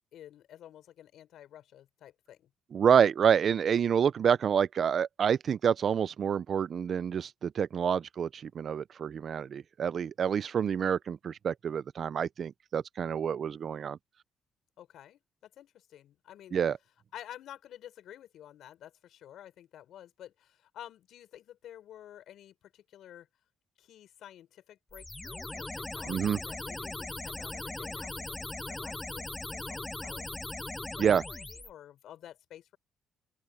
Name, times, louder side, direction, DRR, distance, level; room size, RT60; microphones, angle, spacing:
voice 1, 0.1-2.5 14.8-16.6 17.1-23.3 23.8-30.4 31.0-32.8, left 11 dB, 75° left, 6.1 m, -51 dB
voice 2, 2.7-14.0 16.5-16.8 26.1-26.4 31.0-31.2, right 7 dB, 55° right, 0.6 m, -28 dB
sound 1, 24.9-31.7, left 2 dB, 15° left, 0.6 m, -39 dB
open air
cardioid pair, 90°, 0 cm